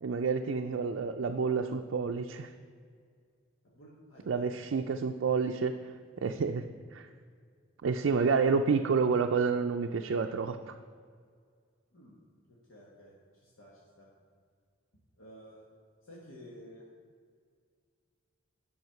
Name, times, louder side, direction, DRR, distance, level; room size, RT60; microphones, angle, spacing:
voice 1, 0.0-2.5 4.3-5.9 6.2-6.6 6.9-7.1 7.8-10.7, right 5 dB, 70° right, 4 dB, 0.4 m, -29 dB
voice 2, 3.6-4.5 5.3-5.4 11.9-12.2 12.5-14.1 15.2-15.6 16.0-16.8, equal, 85° left, -5 dB, 1.6 m, -53 dB
9.3 x 5.6 x 5.7 m, 2.1 s
head